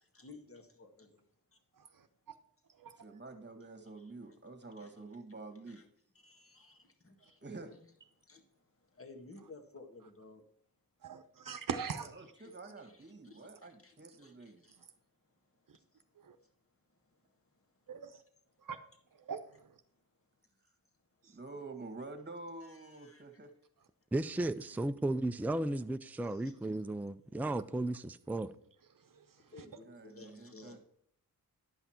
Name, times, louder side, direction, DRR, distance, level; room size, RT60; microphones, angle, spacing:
voice 1, 0.1-1.2 4.0-4.4 4.8-4.9 5.7-5.9 6.2-7.4 7.7-7.8 8.3-8.4 8.9-10.4 12.4-14.8 15.7-15.8 22.6-23.2 26.3-26.5 29.5-30.8, left 3 dB, 35° left, 1.8 m, -56 dB
voice 2, 3.0-5.8 7.4-7.7 8.0-8.1 12.0-14.7 21.2-23.5 29.9-30.8, right 3 dB, 30° right, 1.8 m, -48 dB
voice 3, 11.0-12.1 16.2-16.3 17.9-18.2 18.6-18.8 19.3-19.4, right 6 dB, 60° right, 0.8 m, -40 dB
voice 4, 24.1-28.5, right 2 dB, 5° right, 0.4 m, -34 dB
11.0 x 5.8 x 4.4 m
wide cardioid pair, 75°, 37 cm